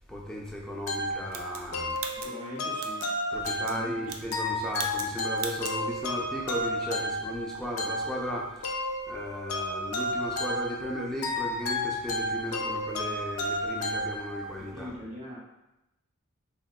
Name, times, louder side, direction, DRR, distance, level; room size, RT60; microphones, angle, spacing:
voice 1, 0.1-2.0 3.3-8.7 9.1-14.9, equal, 5° left, -3 dB, 0.4 m, -36 dB
sound 1, 0.9-14.7, left 1 dB, 80° left, 0.4 m, -32 dB
sound 2, 1.3-3.1 3.4-3.8 4.0-4.5 4.7-5.1 5.4-5.8, right 6 dB, 80° right, 0.3 m, -39 dB
voice 2, 2.1-3.1 3.4-4.4 14.6-15.4, left 1 dB, 35° right, -5 dB, 0.8 m, -42 dB
3.7 x 2.2 x 2.3 m, 0.93 s
head